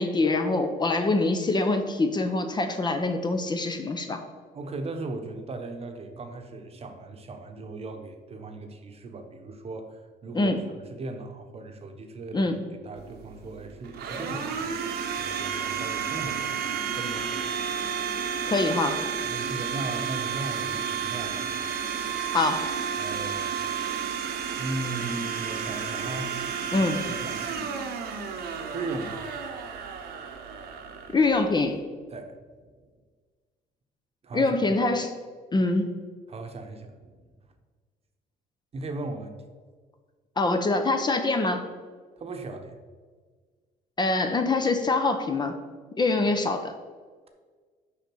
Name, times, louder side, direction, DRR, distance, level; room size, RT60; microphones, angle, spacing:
voice 1, 0.0-4.2 10.3-10.6 12.3-12.6 18.5-19.0 22.3-22.7 26.7-27.1 31.1-31.8 34.3-35.1 35.5-36.0 40.4-41.6 44.0-45.6 46.0-46.7, left 3 dB, 25° left, 6 dB, 0.9 m, -24 dB
voice 2, 4.5-10.5 10.9-12.5 12.8-14.7 15.2-17.3 19.2-21.5 23.0-23.5 24.6-26.3 26.7-27.4 28.7-29.3 32.1-32.4 34.2-34.6 36.3-37.1 38.7-39.4 42.2-42.8, right 2 dB, 35° right, 6 dB, 1.1 m, -37 dB
Domestic sounds home sounds, 13.0-31.8, right 7 dB, 70° right, 1.2 m, -32 dB
6.7 x 5.6 x 6.2 m, 1.5 s
cardioid pair, 110°, 17 cm